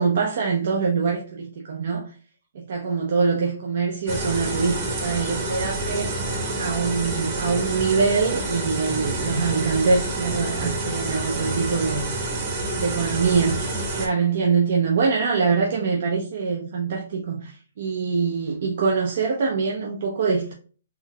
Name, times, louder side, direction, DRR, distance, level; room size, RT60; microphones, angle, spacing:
voice 1, 0.0-2.0 2.5-6.1 6.6-12.0 12.8-13.7 13.9-20.5, right 5 dB, 55° right, 0.6 m, -24 dB
sound 1, 4.1-14.1, right 2 dB, 30° right, 1.0 m, -28 dB
3.7 x 2.6 x 2.2 m
hypercardioid pair, 155°, 0 cm